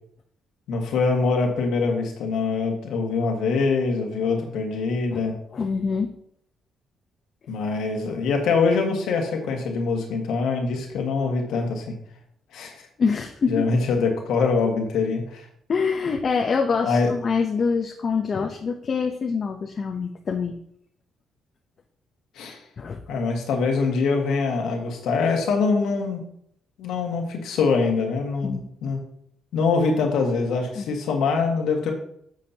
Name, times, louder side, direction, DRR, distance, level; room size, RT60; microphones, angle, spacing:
voice 1, 0.7-5.4 7.5-12.0 12.5-12.7 13.5-15.4 16.8-17.1 22.3-22.6 23.1-26.2 26.8-29.0 29.5-31.9, left 4 dB, 85° left, 2 dB, 1.7 m, -24 dB
voice 2, 5.5-6.1 13.0-13.7 15.7-20.5 22.8-23.0 28.4-28.7 30.7-30.9, left 5 dB, 45° left, 2 dB, 0.8 m, -25 dB
9.3 x 6.6 x 2.9 m, 0.68 s
cardioid pair, 90°, 0 cm